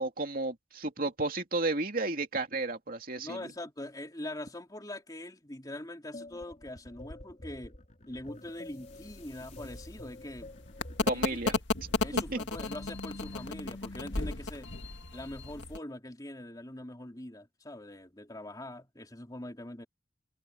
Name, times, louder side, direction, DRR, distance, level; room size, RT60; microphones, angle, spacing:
voice 1, 0.0-3.4 11.1-11.5 12.1-12.4, right 2 dB, 50° right, 2.8 m, -32 dB
voice 2, 3.2-7.7 8.1-10.5 11.1-11.6 12.0-14.7 15.1-19.9, left 1 dB, 20° left, 3.0 m, -43 dB
sound 1, 6.1-11.3, left 2 dB, 40° left, 4.2 m, -49 dB
sound 2, 8.9-15.8, left 3 dB, 80° left, 1.9 m, -35 dB
head